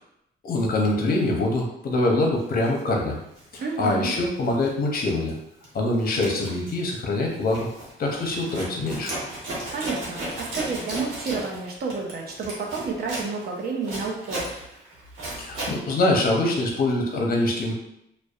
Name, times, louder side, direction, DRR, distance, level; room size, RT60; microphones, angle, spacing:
voice 1, 0.4-3.2 3.5-5.4 5.7-7.7 8.0-9.1 15.4-17.7, left 2 dB, 50° left, 0 dB, 0.6 m, -24 dB
Zipper (clothing), 2.6-2.8 3.3-4.7 5.0-5.3 5.6-15.8, right 1 dB, 90° right, 1.1 m, -35 dB
voice 2, 3.6-4.1 9.7-14.4, right 4 dB, 50° right, 0 dB, 0.6 m, -30 dB
2.6 x 2.1 x 2.3 m, 0.80 s
cardioid pair, 90°, 20 cm